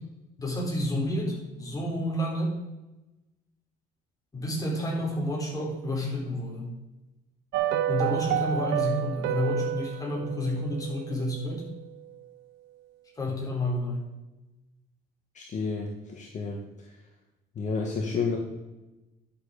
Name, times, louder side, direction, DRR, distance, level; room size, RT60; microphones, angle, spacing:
voice 1, 0.4-2.6 4.3-6.7 7.9-11.6 13.2-14.0, left 1 dB, 20° left, -2 dB, 3.9 m, -30 dB
sound 1, 7.5-11.8 12.1-12.2, right 11 dB, 85° right, 0.7 m, -30 dB
voice 2, 15.3-16.9 17.5-18.4, left 4 dB, 45° left, 0 dB, 1.6 m, -31 dB
10.5 x 6.9 x 5.0 m, 1.0 s
cardioid pair, 110°, 17 cm